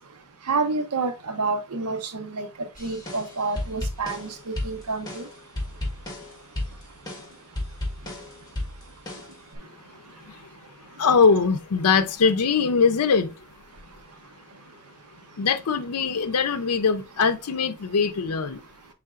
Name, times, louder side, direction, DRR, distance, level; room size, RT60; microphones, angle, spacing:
voice 1, 0.5-5.2, right 4 dB, 90° right, 0.8 m, -29 dB
sound 1, 2.7-9.6, left 1 dB, 20° left, 1.5 m, -34 dB
voice 2, 11.0-13.3 15.4-18.6, left 5 dB, 85° left, 0.5 m, -21 dB
5.7 x 3.5 x 2.4 m
head